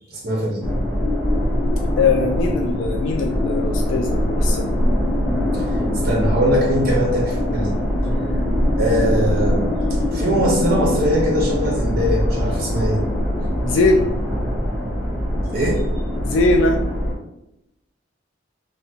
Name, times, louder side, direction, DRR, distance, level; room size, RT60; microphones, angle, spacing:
voice 1, 0.1-0.7 6.0-7.8 8.3-8.4 8.8-9.7 10.1-13.1 15.5-15.8, equal, 55° right, -2 dB, 0.8 m, -21 dB
sound 1, 0.6-17.1, equal, ahead, 0.7 m, -22 dB
voice 2, 2.0-4.7 13.6-14.1 16.2-16.8, left 3 dB, 80° left, 3 dB, 0.3 m, -20 dB
2.8 x 2.2 x 2.7 m, 0.87 s
head